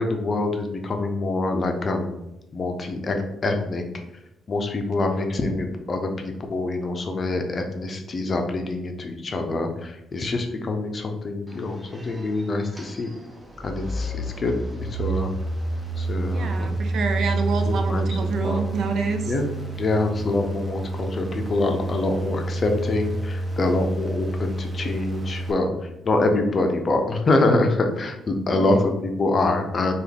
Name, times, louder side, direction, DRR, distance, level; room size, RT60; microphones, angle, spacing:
voice 1, 0.0-2.2 2.5-3.8 4.5-13.1 13.6-14.5 15.0-15.3 16.0-16.7 17.9-18.6 19.3-19.5 19.8-25.7 26.0-29.9, left 2 dB, 40° left, 4 dB, 0.5 m, -25 dB
sound 1, 11.5-25.5, right 2 dB, 15° right, 0.7 m, -29 dB
voice 2, 16.3-19.3 28.5-28.8, right 3 dB, 65° right, 6 dB, 0.4 m, -28 dB
3.5 x 2.4 x 3.3 m, 0.88 s
cardioid pair, 90°, 0 cm